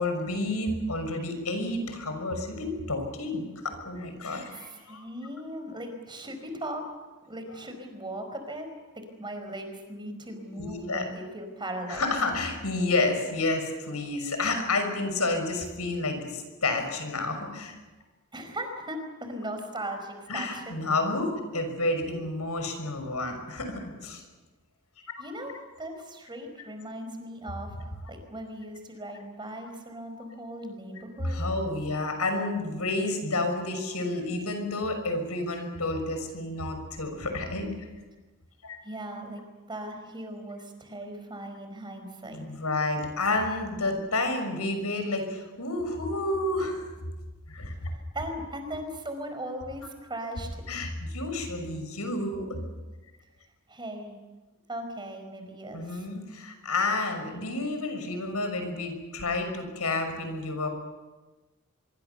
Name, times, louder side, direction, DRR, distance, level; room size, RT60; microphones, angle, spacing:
voice 1, 0.0-5.0 10.5-11.1 11.9-17.8 20.3-24.2 31.2-37.7 38.6-38.8 42.3-46.8 47.5-47.9 50.7-52.6 55.7-60.7, left 2 dB, 90° left, 6 dB, 6.2 m, -30 dB
voice 2, 4.5-6.8 7.3-8.7 8.9-12.1 18.3-20.7 25.2-31.4 38.8-39.4 39.7-42.4 47.7-50.6 53.7-54.2 54.7-56.0, right 1 dB, 20° right, 6 dB, 4.8 m, -38 dB
25.0 x 23.5 x 7.1 m, 1.2 s
head